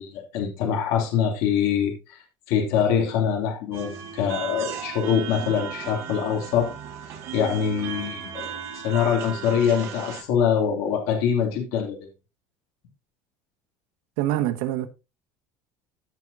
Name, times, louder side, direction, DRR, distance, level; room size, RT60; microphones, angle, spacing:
voice 1, 0.0-6.7 7.3-12.0, left 8 dB, 70° left, 2.6 m, -24 dB
sound 1, 3.7-10.2, right 8 dB, 45° right, 4.3 m, -36 dB
voice 2, 14.2-14.9, right 13 dB, 80° right, 1.3 m, -25 dB
15.0 x 6.2 x 2.7 m
cardioid pair, 160°, 6 cm